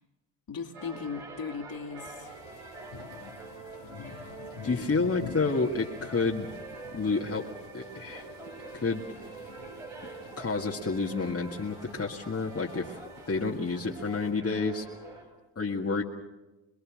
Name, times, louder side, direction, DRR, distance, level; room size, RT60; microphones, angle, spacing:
voice 1, 0.5-2.3 4.0-5.2 6.0-6.1, left 5 dB, 50° left, 4 dB, 2.6 m, -39 dB
sound 1, 0.7-15.2, right 3 dB, 80° right, 5.4 m, -45 dB
sound 2, 2.2-14.3, left 7 dB, 75° left, 1.8 m, -49 dB
voice 2, 4.6-6.5 6.9-7.5 7.7-8.3 8.7-9.0 10.4-13.0 13.3-14.9 15.6-16.0, left 4 dB, 30° left, -1 dB, 2.0 m, -29 dB
23.5 x 21.5 x 6.4 m, 1.1 s
hypercardioid pair, 45°, 47 cm